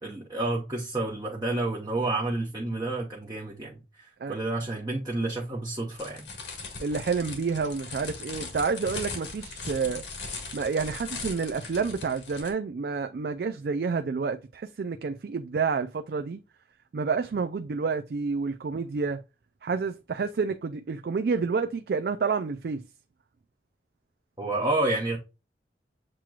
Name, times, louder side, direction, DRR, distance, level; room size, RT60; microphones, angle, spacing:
voice 1, 0.0-6.3 24.4-25.2, right 2 dB, 20° right, 1.0 m, -30 dB
sound 1, 5.9-12.5, left 4 dB, 90° left, 1.8 m, -39 dB
voice 2, 6.8-10.0 10.5-16.4 16.9-19.2 19.6-22.8, right 5 dB, 60° right, 0.4 m, -29 dB
7.4 x 3.0 x 2.3 m
head